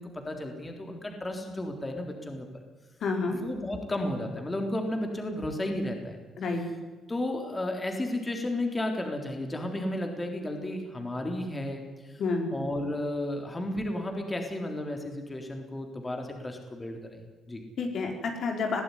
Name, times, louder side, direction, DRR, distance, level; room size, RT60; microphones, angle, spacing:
voice 1, 0.0-2.5 3.3-6.2 7.1-12.2 12.5-17.6, left 1 dB, 20° left, 3 dB, 3.7 m, -33 dB
voice 2, 3.0-3.4 6.4-6.6 12.2-12.5 17.8-18.8, left 4 dB, 65° left, 3 dB, 4.7 m, -29 dB
21.5 x 15.0 x 10.0 m, 1.3 s
cardioid pair, 90°, 0 cm